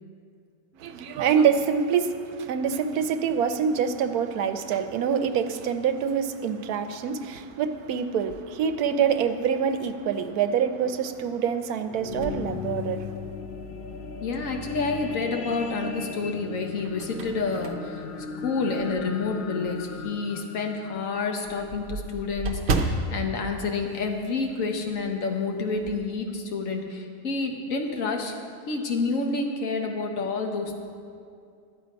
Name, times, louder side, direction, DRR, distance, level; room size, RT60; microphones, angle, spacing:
voice 1, 0.7-13.1, right 7 dB, 80° right, 1.1 m, -25 dB
sound 1, 11.6-22.2 22.8-22.9, left 5 dB, 80° left, 0.5 m, -37 dB
sound 2, 12.1-13.5 14.0-14.1 15.6-16.1 16.6-19.2 19.6-19.8 20.1-20.2 20.5-20.6 20.9-24.7 24.9-25.1 25.5-26.1, right 3 dB, 55° right, 0.9 m, -33 dB
voice 2, 14.2-18.0 18.4-28.3 28.7-30.7, left 4 dB, 60° left, 1.4 m, -29 dB
12.0 x 8.1 x 5.1 m
omnidirectional pair, 1.6 m